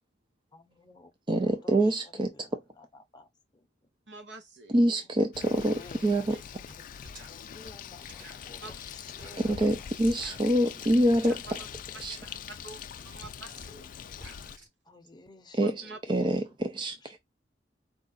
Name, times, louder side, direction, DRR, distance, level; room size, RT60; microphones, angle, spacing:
voice 1, 0.5-3.7 5.4-6.4 6.7-6.9 7.2-10.9 14.8-16.3 17.0-17.1, left 2 dB, 25° left, 0.8 m, -53 dB
voice 2, 1.3-2.6 4.7-6.4 9.4-11.6 12.0-12.2 15.5-17.2, right 1 dB, 25° right, 0.5 m, -26 dB
voice 3, 4.1-4.7 6.3-6.4 8.6-8.7 11.6-11.7 11.9-12.2 12.6-12.8 13.0-14.1 15.6-16.0, right 2 dB, 80° right, 1.1 m, -46 dB
Bird, 5.3-14.6, left 8 dB, 50° left, 0.3 m, -43 dB
sound 1, 6.7-6.8 7.0-14.7, right 1 dB, 50° right, 1.8 m, -51 dB
4.7 x 2.4 x 3.8 m
head